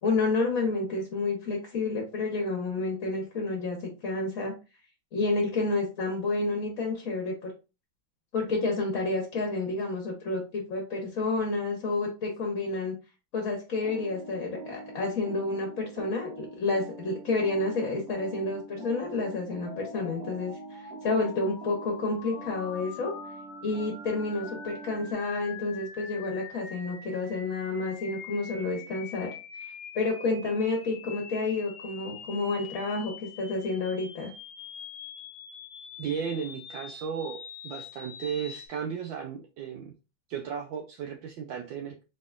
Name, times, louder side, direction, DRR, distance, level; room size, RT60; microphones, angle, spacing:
voice 1, 0.0-4.5 5.1-7.5 8.3-13.0 13.3-23.1 23.6-34.3, left 3 dB, 50° left, 2 dB, 1.2 m, -30 dB
sound 1, 13.8-25.1, right 3 dB, 60° right, 1.4 m, -45 dB
sound 2, 19.6-38.7, left 6 dB, 75° left, 1.6 m, -45 dB
voice 2, 36.0-37.4 37.6-39.9 40.3-42.0, right 7 dB, 75° right, 3 dB, 1.2 m, -35 dB
4.2 x 3.7 x 2.4 m, 0.30 s
omnidirectional pair, 2.2 m